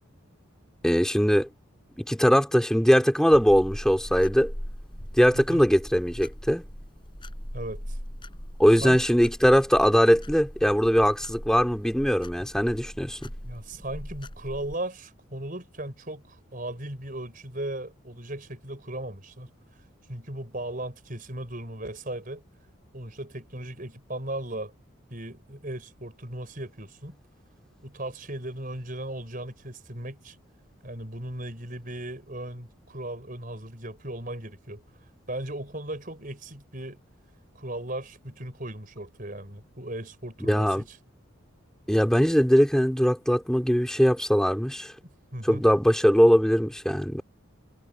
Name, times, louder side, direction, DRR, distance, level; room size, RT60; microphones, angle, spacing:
voice 1, 0.8-1.5 2.0-4.5 5.2-6.6 8.6-13.3 40.4-40.8 41.9-44.9 45.4-47.2, equal, 5° left, 3.1 m, -21 dB
sound 1, 3.3-14.8, equal, 25° left, 6.6 m, -40 dB
voice 2, 5.3-5.7 7.5-8.0 8.8-9.0 13.4-19.5 20.1-22.4 22.9-24.7 25.1-27.2 27.8-30.4 30.8-34.8 35.3-37.0 37.6-41.0 45.3-45.6, right 1 dB, 40° right, 5.3 m, -37 dB
head